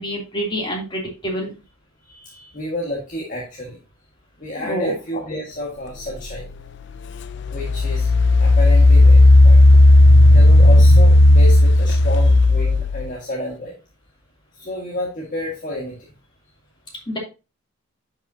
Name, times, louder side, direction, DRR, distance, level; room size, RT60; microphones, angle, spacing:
voice 1, 0.0-1.5 4.6-4.9 17.1-17.2, equal, 20° left, -2 dB, 2.8 m, -26 dB
voice 2, 2.0-3.8 4.4-6.5 7.5-8.1 8.4-9.6 10.3-13.8 14.6-16.1, left 1 dB, 35° left, -3 dB, 1.7 m, -30 dB
Engine, 6.4-6.5 7.2-13.1, left 1 dB, 55° left, 0.4 m, -11 dB
10.0 x 5.7 x 2.8 m, 0.29 s
head